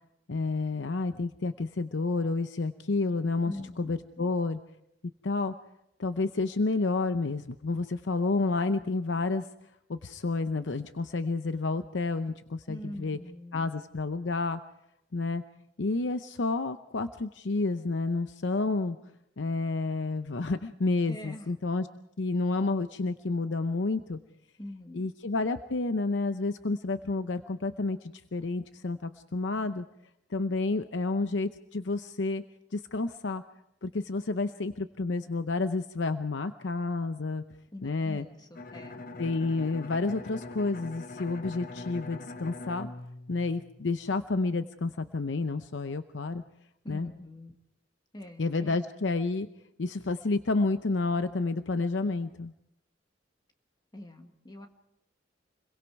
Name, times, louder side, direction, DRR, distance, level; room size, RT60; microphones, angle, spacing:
voice 1, 0.3-4.6 5.2-5.5 6.0-9.5 9.9-13.2 13.5-14.6 15.1-15.4 15.8-19.0 19.4-21.9 22.2-24.2 24.9-29.8 30.3-32.4 32.7-33.4 33.8-37.4 37.8-38.2 39.2-42.9 43.3-46.4 46.9-47.1 48.4-49.5 49.8-52.5, left 3 dB, 75° left, 10 dB, 0.7 m, -30 dB
voice 2, 3.4-4.3 12.7-13.7 21.1-21.5 24.6-25.1 37.7-39.0 46.8-47.6 48.1-48.8 53.9-54.7, left 1 dB, 25° left, 5 dB, 1.7 m, -44 dB
Bowed string instrument, 38.5-44.2, left 2 dB, 50° left, 1.1 m, -43 dB
29.0 x 22.5 x 4.7 m, 0.80 s
head